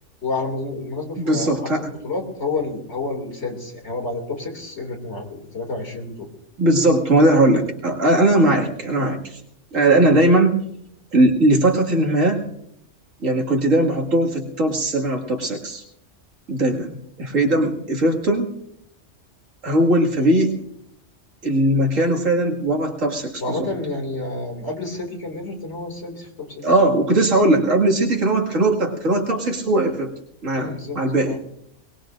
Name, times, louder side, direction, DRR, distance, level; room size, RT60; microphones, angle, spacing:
voice 1, 0.2-6.3 23.4-26.6 30.5-31.0 31.2-31.4, left 3 dB, 60° left, 2 dB, 3.0 m, -29 dB
voice 2, 1.2-1.9 6.6-9.4 9.7-10.6 11.1-12.4 13.2-15.8 16.5-18.5 19.6-20.6 21.4-23.7 26.6-30.1 30.4-31.4, right 1 dB, 85° right, 0 dB, 2.5 m, -19 dB
22.5 x 20.5 x 2.6 m, 0.75 s
omnidirectional pair, 1.3 m